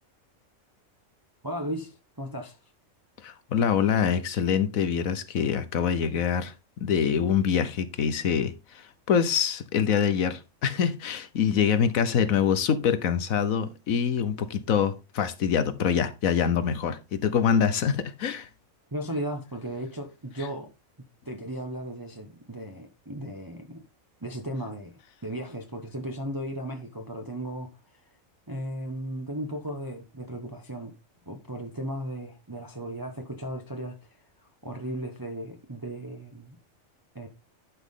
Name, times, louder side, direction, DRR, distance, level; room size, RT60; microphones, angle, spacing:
voice 1, 1.4-2.6 18.9-20.7 21.2-23.8 24.2-27.8 28.5-30.9 31.3-34.2 34.6-36.6 37.1-37.3, right 1 dB, 15° right, 1.1 m, -36 dB
voice 2, 3.2-6.5 6.8-18.5, left 7 dB, 80° left, 1.4 m, -25 dB
11.0 x 6.1 x 3.7 m
omnidirectional pair, 1.4 m